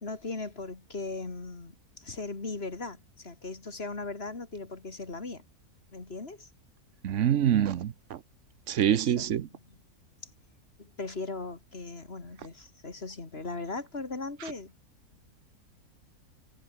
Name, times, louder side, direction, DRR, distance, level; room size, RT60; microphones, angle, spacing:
voice 1, 0.0-5.4 5.9-6.5 9.2-9.3 10.8-14.7, left 3 dB, 40° left, 2.6 m, -38 dB
voice 2, 7.0-8.2 8.7-9.5, right 10 dB, 60° right, 1.0 m, -25 dB
omnidirectional pair, 1.6 m